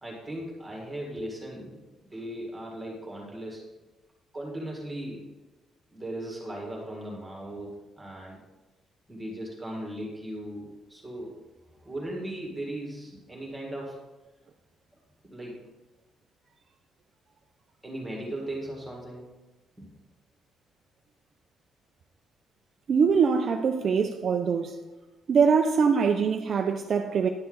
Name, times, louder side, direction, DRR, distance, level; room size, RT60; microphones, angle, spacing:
voice 1, 0.0-3.6 4.3-5.3 5.9-8.4 9.1-11.3 11.8-14.0 15.2-15.6 17.8-19.3 19.8-19.9, right 1 dB, 10° right, 1.9 m, -37 dB
voice 2, 22.9-24.8 25.3-27.3, right 6 dB, 40° right, 0.5 m, -23 dB
10.5 x 7.0 x 3.9 m
cardioid pair, 155°, 0 cm